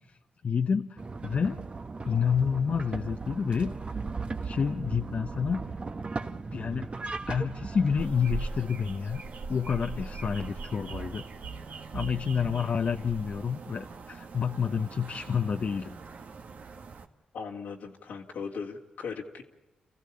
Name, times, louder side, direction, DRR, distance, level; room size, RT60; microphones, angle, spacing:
voice 1, 0.4-1.6 2.1-3.7 4.4-5.7 6.5-6.8 7.3-9.2 9.5-11.2 11.9-16.0, left 6 dB, 55° left, 6 dB, 0.8 m, -29 dB
sound 1, 1.0-8.1, right 4 dB, 40° right, 1.3 m, -37 dB
sound 2, 8.0-17.1, right 3 dB, 65° right, 1.6 m, -40 dB
voice 2, 17.3-19.4, left 5 dB, 85° left, -2 dB, 2.1 m, -38 dB
29.5 x 15.0 x 8.6 m, 1.1 s
cardioid pair, 55°, 3 cm